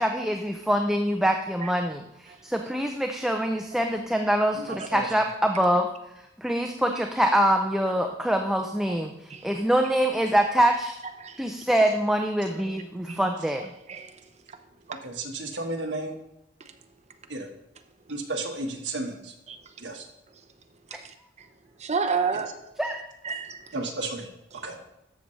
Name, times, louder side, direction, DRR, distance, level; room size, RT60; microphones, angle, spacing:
voice 1, 0.0-5.9 6.4-10.9 11.4-13.7 20.9-21.0 22.8-23.0, equal, 5° right, 0.5 m, -24 dB
voice 2, 4.5-5.1 12.5-12.6 14.9-16.1 17.3-17.5 18.1-19.3 19.8-20.0 23.7-24.3 24.6-24.8, right 2 dB, 75° right, 1.3 m, -33 dB
voice 3, 20.9-21.5 21.8-22.6 23.2-23.7 24.5-24.6, right 5 dB, 40° right, 0.7 m, -31 dB
13.0 x 6.7 x 3.2 m
head